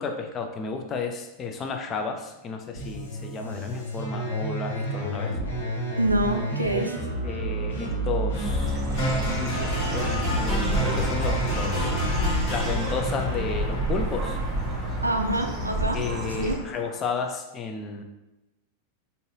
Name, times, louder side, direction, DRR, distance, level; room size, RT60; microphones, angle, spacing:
voice 1, 0.0-5.4 6.6-6.9 7.2-11.9 12.5-14.4 15.9-18.0, left 5 dB, 25° left, 4 dB, 0.4 m, -33 dB
sound 1, 2.7-12.2, right 1 dB, 75° left, 1.1 m, -30 dB
voice 2, 6.0-6.9 15.0-16.0 16.4-16.6, right 1 dB, 85° right, 4 dB, 0.3 m, -25 dB
Bird, 8.4-16.5, right 1 dB, 25° right, 0.7 m, -29 dB
sound 2, 9.0-17.0, equal, 45° left, 1.5 m, -33 dB
3.9 x 2.6 x 2.6 m, 0.98 s
figure-of-eight pair, 90°, 0 cm